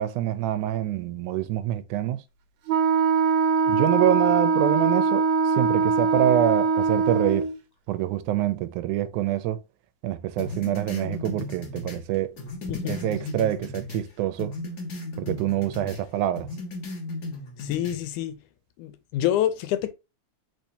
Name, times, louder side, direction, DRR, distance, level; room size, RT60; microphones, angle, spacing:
voice 1, 0.0-2.2 3.7-7.5 7.9-9.6 10.0-12.4 12.8-14.5 15.2-16.5, right 12 dB, 85° right, 2.0 m, -26 dB
Wind instrument woodwind instrument, 2.7-7.5, right 4 dB, 65° right, 2.0 m, -22 dB
sound 1, 10.4-14.1 14.4-16.0 16.3-18.0, left 2 dB, 60° left, 1.0 m, -36 dB
voice 2, 12.7-13.0 17.6-18.4 18.8-19.9, left 12 dB, 85° left, 2.1 m, -27 dB
4.5 x 4.4 x 2.7 m
omnidirectional pair, 3.5 m